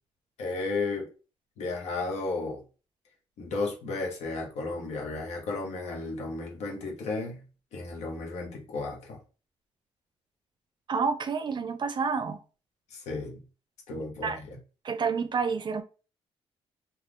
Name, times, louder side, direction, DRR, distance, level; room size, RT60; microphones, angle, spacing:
voice 1, 0.4-1.1 1.6-2.6 3.4-7.4 7.7-9.2 12.9-13.4 13.9-14.6, left 3 dB, 85° left, 0.9 m, -33 dB
voice 2, 10.9-12.4 14.0-14.4 14.8-15.8, right 5 dB, 45° right, 0.4 m, -29 dB
3.4 x 2.3 x 2.5 m
cardioid pair, 85°, 11 cm